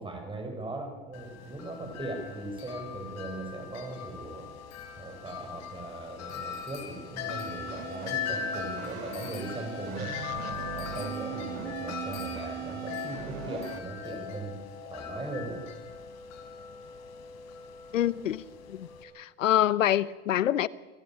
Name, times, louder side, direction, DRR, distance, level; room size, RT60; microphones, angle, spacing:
voice 1, 0.0-4.5 5.0-10.1 10.7-15.6, right 2 dB, 15° right, 5.8 m, -39 dB
Wind chime, 1.1-19.0, left 7 dB, 45° left, 3.4 m, -40 dB
sound 1, 7.3-13.8, right 12 dB, 60° right, 1.8 m, -40 dB
voice 2, 17.9-18.4 18.7-20.7, left 12 dB, 85° left, 0.8 m, -26 dB
28.5 x 13.5 x 7.5 m
hypercardioid pair, 100°, 38 cm